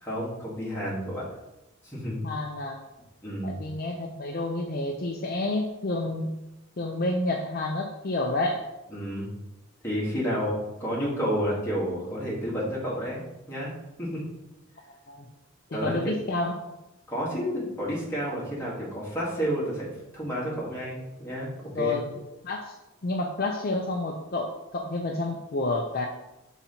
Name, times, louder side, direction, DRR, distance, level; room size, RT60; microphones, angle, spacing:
voice 1, 0.0-1.3 1.8-2.2 3.2-3.5 8.9-9.3 9.8-13.2 13.5-13.7 14.0-14.2 15.7-16.0 17.1-22.0, equal, 10° left, -7 dB, 1.9 m, -30 dB
voice 2, 2.2-2.8 3.4-6.3 6.8-8.6 15.1-15.2 15.7-16.7 21.7-22.0 22.4-22.7 23.0-26.1, left 2 dB, 45° left, 2 dB, 0.5 m, -29 dB
5.9 x 3.9 x 4.3 m, 0.95 s
head